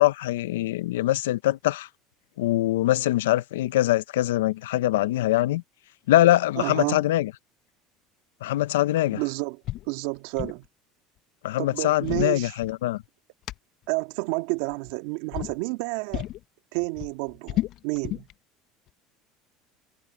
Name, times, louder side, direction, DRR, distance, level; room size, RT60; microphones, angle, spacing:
voice 1, 0.0-1.9 2.4-5.6 6.1-7.3 8.4-9.2 11.4-13.0, left 15 dB, 85° left, 0.8 m, -23 dB
voice 2, 6.6-7.0 9.1-10.6 11.6-12.5 13.9-16.3 16.7-18.3, right 25 dB, 75° right, 1.8 m, -30 dB
sound 1, 9.6-9.9 10.2-10.7 11.8-13.0 13.5-13.6 14.6-15.0 15.3-15.6 16.1-16.4 16.8-18.3, left 15 dB, 55° left, 0.3 m, -32 dB
hypercardioid pair, 80°, 0 cm